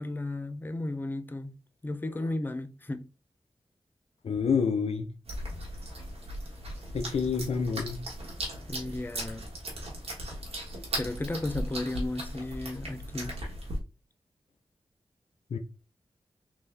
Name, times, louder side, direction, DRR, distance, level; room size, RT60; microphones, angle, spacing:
voice 1, 0.0-1.5 1.8-3.1 8.7-9.5 11.0-13.4, left 2 dB, 20° left, 0.5 m, -34 dB
voice 2, 4.2-5.1 6.9-8.0 15.5-15.6, left 6 dB, 80° left, 0.5 m, -28 dB
sound 1, 5.3-13.8, right 1 dB, 75° right, 1.2 m, -37 dB
3.6 x 2.6 x 3.2 m
cardioid pair, 45°, 10 cm